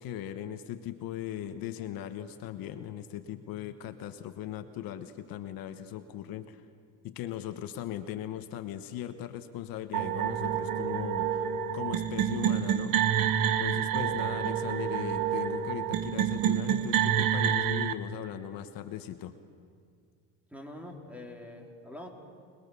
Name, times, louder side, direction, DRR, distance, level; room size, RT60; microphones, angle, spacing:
voice 1, 0.0-6.6 7.0-12.9 13.5-19.3, left 11 dB, 65° left, 9 dB, 1.3 m, -38 dB
sound 1, 9.9-17.9, right 9 dB, 60° right, 1.3 m, -28 dB
voice 2, 20.5-22.1, left 1 dB, 5° right, 2 dB, 3.4 m, -44 dB
26.0 x 21.0 x 7.0 m, 2.2 s
cardioid pair, 115°, 38 cm